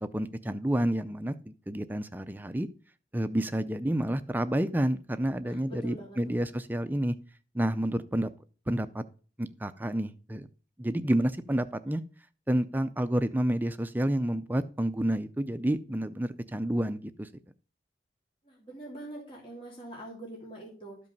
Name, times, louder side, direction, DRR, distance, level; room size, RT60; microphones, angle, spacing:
voice 1, 0.0-2.7 3.1-7.2 7.5-8.3 8.7-9.0 9.4-10.5 10.8-12.0 12.5-17.3, right 1 dB, 10° right, 11 dB, 0.4 m, -29 dB
voice 2, 5.4-6.4 18.4-21.0, right 1 dB, 30° left, -2 dB, 3.0 m, -44 dB
13.0 x 5.3 x 5.4 m, 0.38 s
head